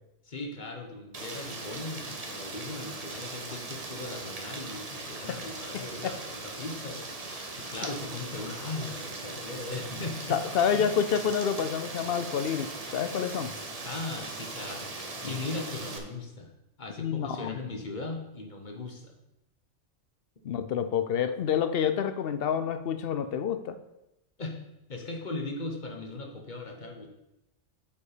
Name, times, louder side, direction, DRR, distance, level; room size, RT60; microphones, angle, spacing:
voice 1, 0.2-10.9 13.8-14.9 15.2-16.5 16.8-19.2 24.4-24.6 24.9-27.1, left 3 dB, 40° left, 2 dB, 1.1 m, -38 dB
Rain, 1.1-16.0, right 3 dB, 35° right, 1.0 m, -39 dB
voice 2, 5.7-6.1 7.8-7.9 10.3-13.6 17.0-17.6 20.4-23.8, left 7 dB, 60° left, 11 dB, 0.8 m, -28 dB
8.3 x 5.3 x 5.0 m, 0.90 s
omnidirectional pair, 1.2 m